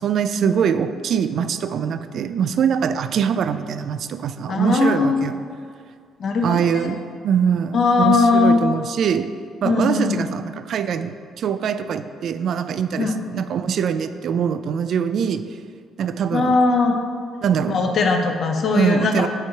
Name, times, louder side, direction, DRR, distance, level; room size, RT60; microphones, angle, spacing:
voice 1, 0.0-5.4 6.4-9.3 9.6-15.4 16.0-16.5 17.4-17.8 18.7-19.3, right 7 dB, 55° right, 11 dB, 0.3 m, -23 dB
voice 2, 4.5-5.3 6.2-6.9 7.7-8.6 9.6-10.3 13.0-13.2 16.3-17.0 17.7-19.3, left 3 dB, 50° left, 4 dB, 0.7 m, -19 dB
8.7 x 3.2 x 4.5 m, 2.1 s
cardioid pair, 125°, 0 cm